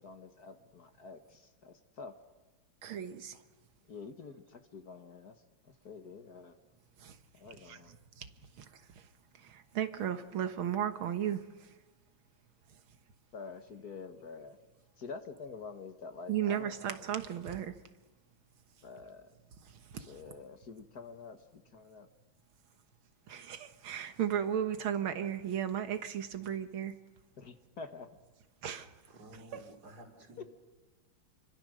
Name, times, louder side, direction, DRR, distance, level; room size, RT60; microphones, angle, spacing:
voice 1, 0.0-2.2 3.9-6.6 7.3-8.0 13.3-14.6 15.0-16.8 18.8-19.4 19.9-22.1 27.4-28.1 30.4-30.5, left 4 dB, 55° left, 1.9 m, -47 dB
voice 2, 2.8-3.3 7.7-7.8 9.8-11.4 16.3-17.7 23.3-26.9 28.6-28.9, right 9 dB, 85° right, 2.1 m, -34 dB
voice 3, 29.1-30.4, right 1 dB, 50° right, 3.9 m, -53 dB
30.0 x 24.5 x 6.5 m
omnidirectional pair, 2.2 m